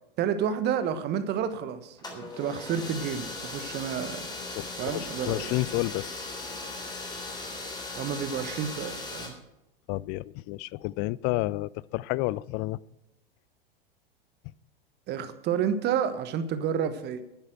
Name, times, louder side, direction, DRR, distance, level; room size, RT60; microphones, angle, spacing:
voice 1, 0.2-4.3 4.8-5.5 7.9-9.4 15.1-17.2, right 8 dB, 35° right, 11 dB, 1.3 m, -30 dB
sound 1, 2.0-9.3, left 3 dB, 15° left, 3.6 m, -38 dB
voice 2, 4.6-6.3 9.9-12.8, left 19 dB, 35° left, 23 dB, 0.4 m, -30 dB
10.5 x 9.6 x 7.7 m, 0.88 s
hypercardioid pair, 95°, 29 cm